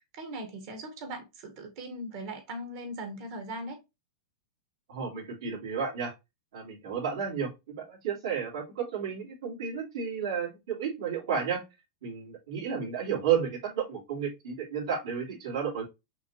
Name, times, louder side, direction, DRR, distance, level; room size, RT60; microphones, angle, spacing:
voice 1, 0.0-3.8, right 1 dB, 45° right, 1.3 m, -39 dB
voice 2, 4.9-6.1 6.5-11.6 12.0-15.8, right 7 dB, 75° right, 2.8 m, -32 dB
5.9 x 2.7 x 2.8 m
supercardioid pair, 155°, 3 cm